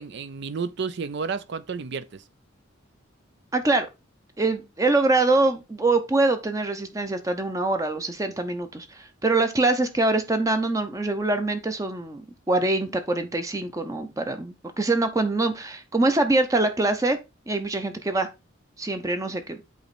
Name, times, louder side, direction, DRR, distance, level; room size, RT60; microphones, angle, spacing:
voice 1, 0.0-2.2, right 5 dB, 60° right, 0.5 m, -31 dB
voice 2, 3.5-3.9 4.4-12.2 12.5-17.2 17.5-18.3 18.8-19.6, right 2 dB, 15° right, 0.6 m, -24 dB
8.3 x 3.1 x 4.1 m
head